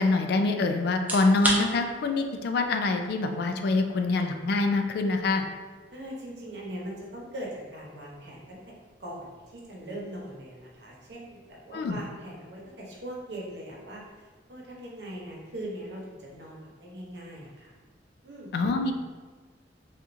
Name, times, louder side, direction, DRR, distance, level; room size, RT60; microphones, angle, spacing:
voice 1, 0.0-5.4 11.7-12.0 18.5-18.9, left 3 dB, 60° left, 6 dB, 0.3 m, -25 dB
sound 1, 0.9-15.8, right 1 dB, 10° right, 0.4 m, -41 dB
voice 2, 5.9-8.6 9.0-17.7 18.2-18.6, right 1 dB, 70° right, -4 dB, 0.9 m, -41 dB
4.2 x 2.4 x 2.6 m, 1.4 s
head